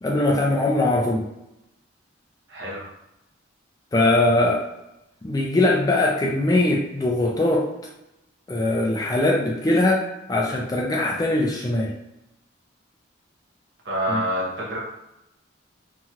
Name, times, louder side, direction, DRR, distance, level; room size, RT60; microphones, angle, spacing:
voice 1, 0.0-1.3 3.9-4.6 5.2-7.7 8.5-11.9 14.1-14.2, left 2 dB, 20° left, -1 dB, 0.3 m, -21 dB
voice 2, 2.5-2.9 13.8-14.8, right 1 dB, 65° right, -4 dB, 1.0 m, -27 dB
2.8 x 2.8 x 2.4 m, 0.91 s
head